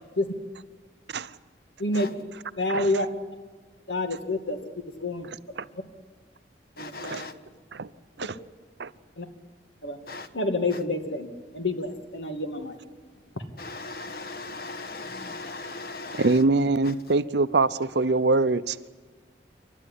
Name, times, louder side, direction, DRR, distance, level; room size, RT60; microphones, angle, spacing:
voice 1, 2.6-3.1 3.9-4.6 5.0-5.3 6.8-7.3 9.2-9.3 9.8-10.0 10.3-12.8 13.3-13.4, left 2 dB, 90° left, 2.1 m, -28 dB
voice 2, 6.8-7.3 10.1-10.3 13.6-16.4, left 3 dB, 55° left, 1.3 m, -38 dB
voice 3, 16.1-18.8, right 3 dB, 75° right, 0.7 m, -23 dB
28.5 x 12.5 x 9.9 m
head